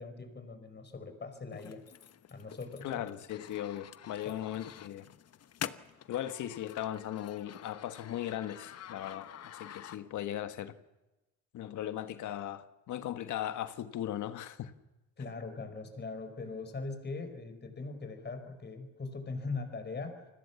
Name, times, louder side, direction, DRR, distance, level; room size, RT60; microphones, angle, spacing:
voice 1, 0.0-1.8 2.3-3.0 4.3-4.4 15.2-20.2, left 3 dB, 35° left, 5.2 m, -41 dB
sound 1, 1.5-10.4, left 10 dB, 50° left, 1.1 m, -47 dB
voice 2, 2.8-5.1 6.1-10.7 11.5-14.7, left 11 dB, 65° left, 1.6 m, -38 dB
29.0 x 21.0 x 7.1 m
supercardioid pair, 75°, 31 cm